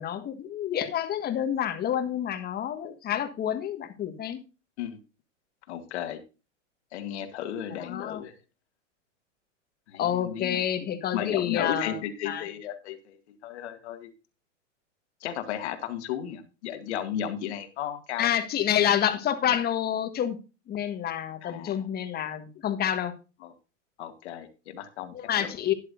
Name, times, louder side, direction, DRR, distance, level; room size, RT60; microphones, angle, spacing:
voice 1, 0.0-4.4 7.8-8.2 10.0-12.0 12.2-12.5 18.2-20.4 20.7-23.1 25.1-25.7, left 10 dB, 25° left, 9 dB, 1.5 m, -28 dB
voice 2, 5.7-6.2 6.9-8.3 9.9-10.6 11.1-14.1 15.2-18.3 21.4-21.9 23.4-23.5 24.0-25.5, left 10 dB, 60° left, 7 dB, 2.1 m, -34 dB
12.5 x 10.5 x 2.6 m, 0.30 s
hypercardioid pair, 125°, 38 cm